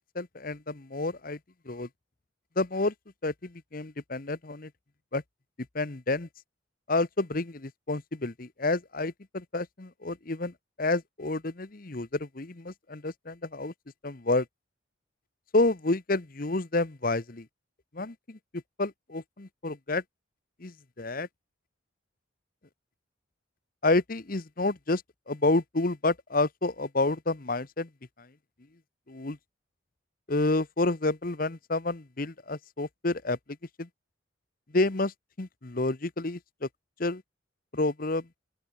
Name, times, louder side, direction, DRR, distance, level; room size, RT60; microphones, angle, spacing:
voice 1, 0.1-1.4 1.7-1.9 2.6-2.9 3.2-4.7 5.1-5.2 5.7-6.3 6.9-13.7 14.0-14.5 15.5-17.5 17.9-18.4 18.8-20.0 20.6-21.3 23.8-25.0 25.3-27.9 28.2-28.3 29.1-29.4 30.3-33.4 33.8-33.9 34.7-36.7 37.0-37.2 37.7-38.3, left 2 dB, 45° left, 1.0 m, -29 dB
open air
head